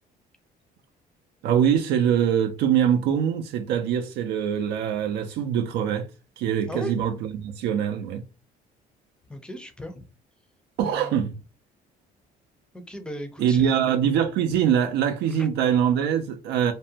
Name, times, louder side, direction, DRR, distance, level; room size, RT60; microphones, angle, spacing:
voice 1, 1.4-6.1 6.4-8.2 10.8-11.3 13.4-16.7, right 9 dB, 80° right, 0.4 m, -23 dB
voice 2, 6.7-7.0 9.3-10.1 10.8-11.2 12.7-13.8 15.3-15.5, equal, 5° left, 0.5 m, -37 dB
2.6 x 2.1 x 2.7 m
cardioid pair, 110°, 17 cm